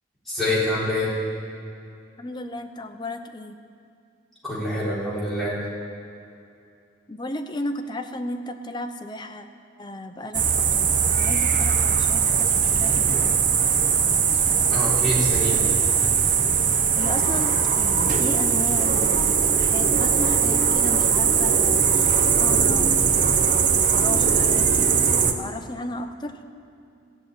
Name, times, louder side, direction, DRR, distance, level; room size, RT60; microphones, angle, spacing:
voice 1, 0.3-1.1 4.4-5.5 14.7-15.6, left 1 dB, ahead, -10 dB, 4.0 m, -26 dB
voice 2, 2.2-3.6 7.1-9.5 9.8-13.3 16.7-23.2 23.7-25.1 25.4-26.5, left 1 dB, 25° left, 6 dB, 0.6 m, -34 dB
sound 1, 10.3-25.3, right 6 dB, 45° right, 0.8 m, -20 dB
15.5 x 6.7 x 9.2 m, 2.5 s
head